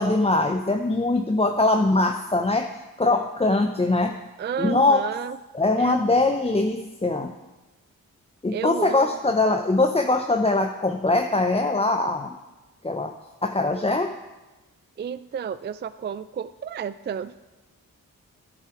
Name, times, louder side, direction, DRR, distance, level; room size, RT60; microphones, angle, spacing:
voice 1, 0.0-2.7 3.0-4.2 4.6-5.0 5.5-7.3 8.4-12.4 12.8-13.1 13.4-14.1, left 2 dB, 15° left, 5 dB, 0.6 m, -22 dB
voice 2, 4.4-5.4 5.8-6.2 8.5-9.2 15.0-17.4, right 7 dB, 30° right, 15 dB, 0.3 m, -32 dB
10.5 x 6.8 x 4.7 m, 1.1 s
cardioid pair, 40°, 37 cm